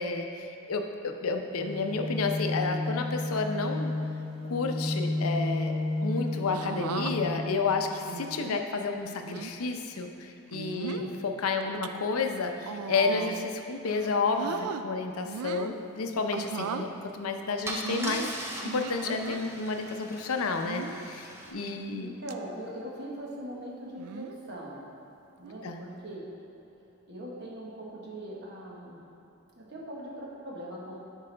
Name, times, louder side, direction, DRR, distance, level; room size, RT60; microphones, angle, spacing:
voice 1, 0.0-3.9 4.4-5.7 6.0-16.9 17.1-22.1 25.6-25.8, left 4 dB, 75° left, 5 dB, 0.6 m, -31 dB
sound 1, 1.6-7.5, left 2 dB, 25° left, 0.9 m, -32 dB
sound 2, 6.5-7.1 8.1-8.6 9.2-9.5 10.5-11.1 11.6-11.9 12.6-13.5 13.9-14.8 15.3-15.8 16.3-16.9 17.8-19.4 20.6-21.1 21.7-22.0 22.3-22.4 24.0-24.4 25.4-25.7, right 6 dB, 85° right, 0.3 m, -37 dB
voice 2, 10.7-11.0 16.6-16.7 21.5-21.6 21.9-24.8 25.4-26.3 26.7-26.8 27.0-29.0 29.5-31.0, right 1 dB, 50° right, -4 dB, 1.2 m, -41 dB
Car / Engine starting / Idling, 16.9-17.1 17.6-21.5, right 1 dB, 10° right, 0.5 m, -40 dB
10.0 x 4.7 x 3.3 m, 2.8 s
head